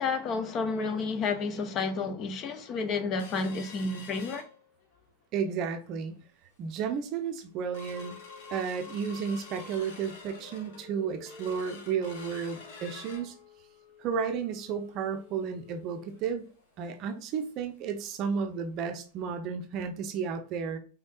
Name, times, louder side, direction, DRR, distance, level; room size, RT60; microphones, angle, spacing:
voice 1, 0.0-4.5, left 4 dB, 30° left, 0.8 m, -31 dB
sound 1, 3.2-5.1 5.5-5.6 5.9-6.2 6.7-6.8 7.2-17.7 18.0-18.1 18.5-18.7 19.2-19.3, left 4 dB, 50° left, 1.2 m, -48 dB
voice 2, 5.3-6.1 6.6-8.1 8.5-13.3 14.0-16.5 16.8-20.8, right 6 dB, 40° right, 0.6 m, -33 dB
5.3 x 3.6 x 2.4 m
figure-of-eight pair, 90°, 0 cm